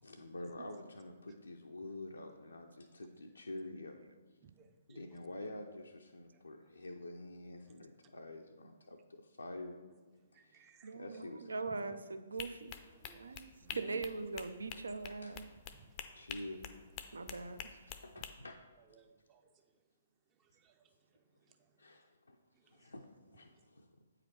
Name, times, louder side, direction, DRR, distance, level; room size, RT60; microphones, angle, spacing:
voice 1, 0.0-4.0 4.9-9.8 10.3-11.5 15.2-15.3 16.1-16.6 18.0-18.6 21.8-22.4 22.6-23.9, left 2 dB, 75° left, 1 dB, 0.5 m, -48 dB
voice 2, 4.4-5.2 6.3-6.4 10.3-11.0 12.9-14.0 15.7-16.1 18.9-19.5 20.4-21.7 22.5-22.9, right 6 dB, 20° right, 6 dB, 0.6 m, -62 dB
voice 3, 10.8-12.7 13.1-15.4 17.1-18.0, right 3 dB, 70° right, 10 dB, 0.5 m, -42 dB
sound 1, 12.4-18.3, left 9 dB, 25° left, 0.5 m, -47 dB
8.4 x 4.9 x 4.6 m, 1.3 s
figure-of-eight pair, 125°, 0 cm